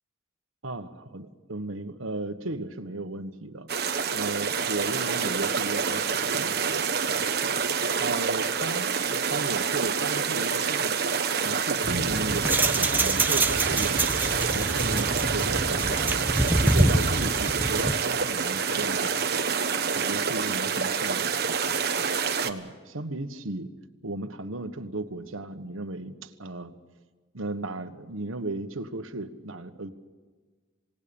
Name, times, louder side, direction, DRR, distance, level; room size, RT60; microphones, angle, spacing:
voice 1, 0.6-3.7 4.1-7.5 8.0-8.9 9.2-11.0 11.3-14.0 14.5-16.2 16.6-19.4 19.9-21.7 22.4-23.7 24.0-26.8 27.3-29.9, right 2 dB, 90° right, 8 dB, 1.4 m, -35 dB
sound 1, 3.7-22.5, right 6 dB, 50° right, 1.2 m, -27 dB
sound 2, 11.8-18.0, right 1 dB, 10° right, 0.8 m, -26 dB
27.5 x 18.5 x 7.1 m, 1.4 s
head